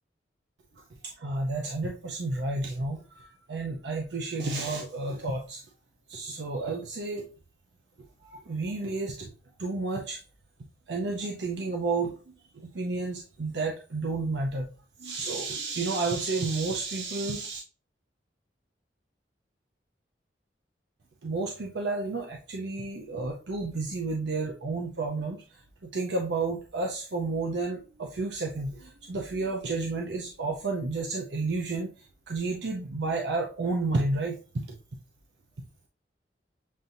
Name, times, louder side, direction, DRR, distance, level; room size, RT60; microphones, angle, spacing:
voice 1, 1.0-5.6 6.1-7.3 8.2-9.3 9.6-10.2 10.9-12.2 12.5-14.7 15.0-17.6 21.2-25.4 25.9-34.8, right 3 dB, 75° right, 1 dB, 0.6 m, -31 dB
7.3 x 2.7 x 2.5 m, 0.37 s
head